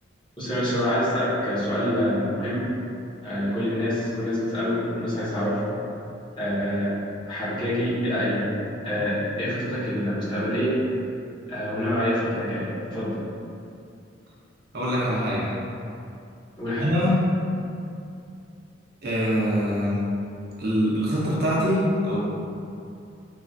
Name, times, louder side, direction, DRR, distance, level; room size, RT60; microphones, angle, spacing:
voice 1, 0.4-2.7 3.2-5.8 6.4-6.9 7.3-8.5 8.8-10.8 11.5-13.1 16.6-16.9, equal, 25° left, -11 dB, 0.9 m, -26 dB
voice 2, 14.7-15.6 16.8-17.2 19.0-20.1 20.6-22.2, equal, 55° right, -6 dB, 0.6 m, -23 dB
3.1 x 2.4 x 2.5 m, 2.6 s
head